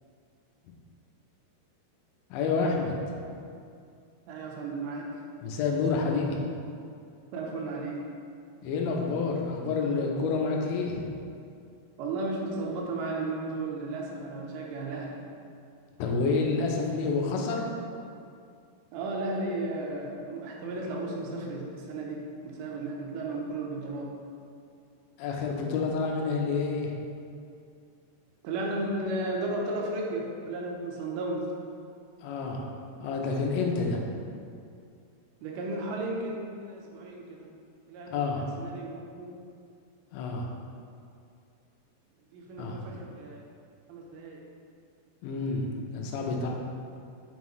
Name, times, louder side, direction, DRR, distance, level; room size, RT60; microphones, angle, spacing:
voice 1, 2.3-3.2 5.4-6.4 8.6-11.0 16.0-17.7 25.2-26.9 32.2-32.7 33.0-34.0 38.1-38.5 40.1-40.5 42.6-43.0 45.2-46.5, left 4 dB, 80° left, 0 dB, 3.0 m, -29 dB
voice 2, 4.3-5.1 7.3-8.1 12.0-15.2 18.9-24.1 28.4-31.5 35.4-37.5 37.9-39.3 42.3-43.4 43.9-44.4, right 2 dB, 80° right, -2 dB, 3.0 m, -34 dB
8.0 x 5.6 x 3.1 m, 2.4 s
omnidirectional pair, 5.3 m